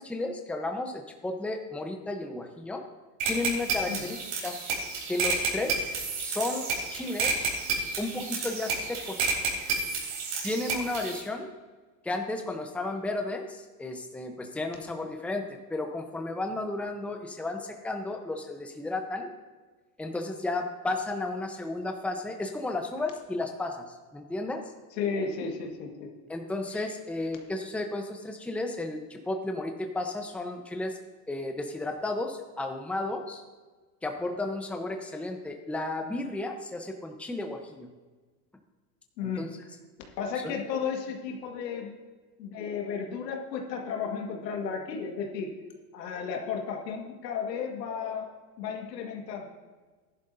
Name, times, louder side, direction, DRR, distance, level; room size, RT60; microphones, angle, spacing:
voice 1, 0.0-2.8 3.3-4.5 5.1-5.9 6.2-7.5 8.0-9.4 10.4-11.5 12.0-19.3 20.0-24.6 26.3-31.0 31.3-33.4 34.0-37.9 39.2-39.5 40.4-40.6, left 2 dB, 5° left, 4 dB, 0.9 m, -33 dB
sound 1, 3.2-11.2, right 4 dB, 65° right, 3.8 m, -31 dB
voice 2, 25.0-26.1 26.7-26.9 39.2-39.4 40.2-42.0 42.4-45.5 45.9-48.3 48.6-49.5, left 6 dB, 85° left, 2 dB, 1.9 m, -33 dB
14.0 x 11.0 x 2.7 m, 1.3 s
supercardioid pair, 105°, 48 cm